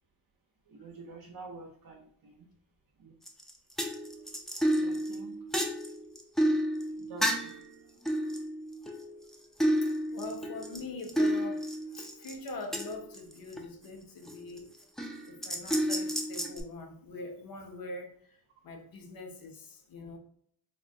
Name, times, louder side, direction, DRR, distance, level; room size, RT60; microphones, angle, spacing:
voice 1, 0.7-2.5 3.0-3.2 4.8-5.4 7.0-7.5 18.6-18.7, right 3 dB, 55° right, 0 dB, 0.6 m, -48 dB
sound 1, 3.3-3.5 3.8-7.7 8.1-9.4 9.6-13.6 14.3-14.6 15.0-16.6, equal, ahead, 0.4 m, -31 dB
voice 2, 9.6-14.7 15.3-18.4 18.6-20.2, left 3 dB, 55° left, 3 dB, 0.7 m, -43 dB
3.5 x 2.1 x 2.6 m, 0.62 s
wide cardioid pair, 90°, 41 cm